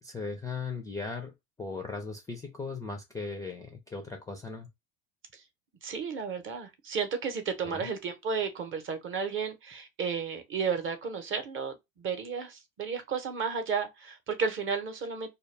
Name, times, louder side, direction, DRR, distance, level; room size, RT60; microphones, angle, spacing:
voice 1, 0.0-4.7 7.7-7.9, left 4 dB, 10° left, 0.3 m, -38 dB
voice 2, 5.8-15.3, right 5 dB, 35° right, 0.7 m, -33 dB
2.2 x 2.1 x 3.2 m
supercardioid pair, 105°, 36 cm